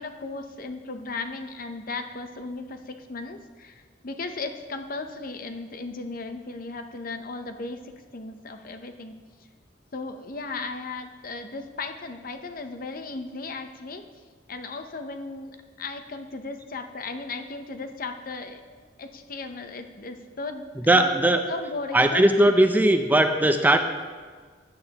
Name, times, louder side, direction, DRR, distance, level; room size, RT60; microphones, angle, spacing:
voice 1, 0.0-9.1 9.9-14.0 14.5-21.2 21.5-22.2, left 3 dB, 50° left, 7 dB, 0.7 m, -36 dB
voice 2, 20.9-21.4 21.9-23.8, right 1 dB, 10° right, 6 dB, 0.5 m, -19 dB
14.5 x 9.2 x 2.9 m, 1.5 s
head